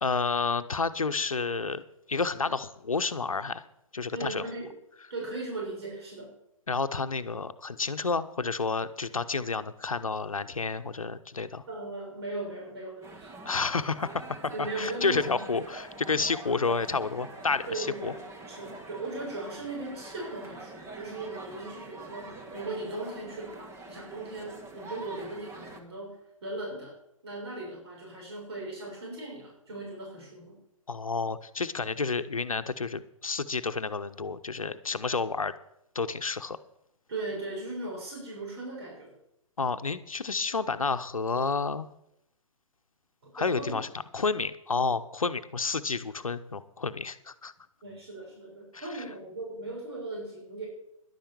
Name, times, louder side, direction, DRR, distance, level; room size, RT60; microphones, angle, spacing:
voice 1, 0.0-1.8 2.1-3.6 3.9-4.4 6.7-11.6 13.4-18.1 30.9-35.5 35.9-36.6 39.6-41.9 43.3-43.9 44.1-47.5 48.9-49.0, left 4 dB, 80° left, 12 dB, 0.9 m, -30 dB
voice 2, 4.1-4.7 5.1-6.3 11.7-13.3 14.5-15.6 17.7-26.9 27.2-30.6 37.1-39.1 43.4-43.8 44.7-44.8 47.8-50.7, right 2 dB, 50° right, -2 dB, 6.3 m, -38 dB
sound 1, 13.0-25.8, right 2 dB, 15° right, 1.5 m, -45 dB
11.0 x 10.0 x 7.1 m, 0.79 s
figure-of-eight pair, 125°, 17 cm